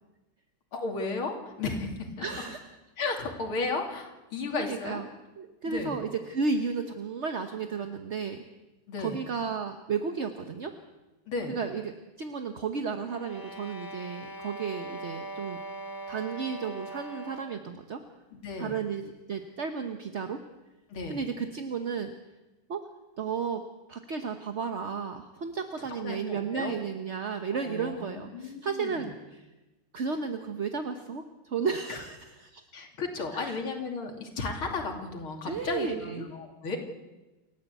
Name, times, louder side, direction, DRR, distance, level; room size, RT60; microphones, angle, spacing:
voice 1, 0.7-2.2 3.0-5.0 5.7-6.0 8.9-9.2 11.3-11.6 18.3-18.8 20.9-21.2 26.0-26.7 27.5-29.1 31.9-32.0 32.7-36.8, left 3 dB, 70° left, 2 dB, 3.6 m, -34 dB
voice 2, 2.2-2.6 4.5-5.0 5.4-8.4 9.0-10.7 11.5-11.9 12.2-15.6 16.1-18.0 18.6-20.4 21.1-22.1 22.7-22.8 23.2-23.6 23.9-29.5 29.9-32.7 33.3-33.6 35.5-36.3, right 5 dB, 40° right, 6 dB, 1.1 m, -33 dB
sound 1, 13.0-17.7, right 2 dB, 20° left, 0.5 m, -41 dB
29.0 x 13.5 x 8.3 m, 1.1 s
omnidirectional pair, 2.4 m